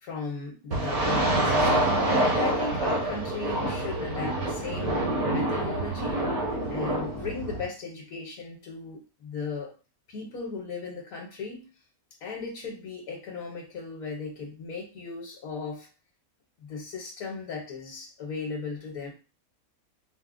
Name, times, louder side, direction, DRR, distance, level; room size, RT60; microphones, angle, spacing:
voice 1, 0.0-1.9 2.3-6.2 6.7-9.7 10.1-11.7 12.2-15.9 16.6-19.1, left 4 dB, 70° left, 0 dB, 1.2 m, -37 dB
sound 1, 0.7-7.6, right 1 dB, 75° right, 1.6 m, -26 dB
4.7 x 2.0 x 2.4 m, 0.32 s
omnidirectional pair, 1.6 m